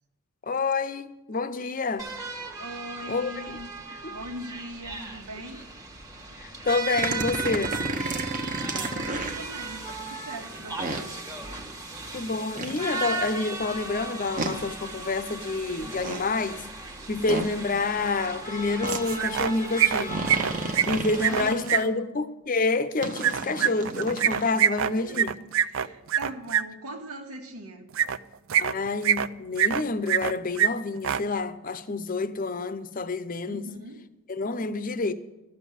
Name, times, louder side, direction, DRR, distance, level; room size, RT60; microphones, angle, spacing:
voice 1, 0.4-2.1 3.1-3.6 4.0-4.2 6.4-7.7 12.1-16.6 17.1-20.2 20.9-25.3 28.6-33.7 34.3-35.1, left 3 dB, 40° left, 0.7 m, -28 dB
sound 1, 2.0-21.5, right 3 dB, 15° right, 1.3 m, -37 dB
voice 2, 2.6-3.7 4.1-5.6 6.3-6.4 8.4-11.0 21.2-22.0 24.9-25.3 25.6-27.9 33.5-34.0, right 1 dB, 90° right, 1.9 m, -41 dB
sound 2, 7.0-9.4 10.8-11.0 12.6-12.8 14.4-14.6 15.8-16.2 17.3-17.5 18.8-19.0 20.1-21.8 23.0-24.5, right 2 dB, 35° right, 1.0 m, -32 dB
sound 3, 18.9-19.5 19.8-21.8 23.2-26.6 27.9-28.2 28.5-29.3 29.6-30.3 30.6-30.7 31.0-31.2, right 9 dB, 60° right, 0.4 m, -24 dB
13.0 x 7.3 x 8.5 m
head